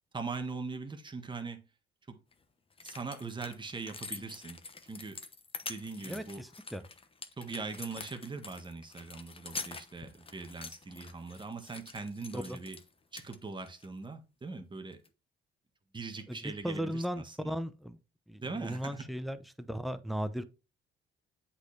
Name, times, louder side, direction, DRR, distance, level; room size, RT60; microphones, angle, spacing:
voice 1, 0.1-1.6 2.1-2.2 2.8-5.2 5.6-6.4 7.4-12.8 13.1-15.0 15.9-17.6 18.4-19.0, right 4 dB, 25° right, 1.4 m, -41 dB
sound 1, 2.3-2.4 2.7-12.9 13.2-13.9 14.9-15.1, left 4 dB, 25° left, 1.0 m, -46 dB
voice 2, 6.0-6.8 12.3-12.6 16.3-18.0 18.3-20.4, equal, ahead, 0.8 m, -37 dB
7.9 x 4.3 x 3.2 m
cardioid pair, 90°, 20 cm